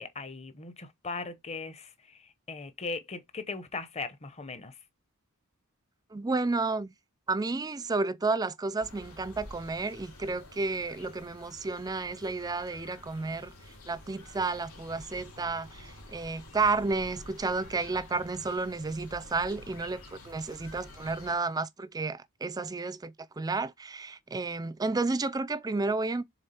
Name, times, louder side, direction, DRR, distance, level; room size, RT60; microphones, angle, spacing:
voice 1, 0.0-4.8, left 4 dB, 30° left, 0.8 m, -39 dB
voice 2, 6.1-6.9 7.3-13.5 13.9-26.2, right 3 dB, 15° right, 0.4 m, -31 dB
sound 1, 8.8-21.3, left 1 dB, 75° left, 2.4 m, -49 dB
7.0 x 3.6 x 4.3 m
head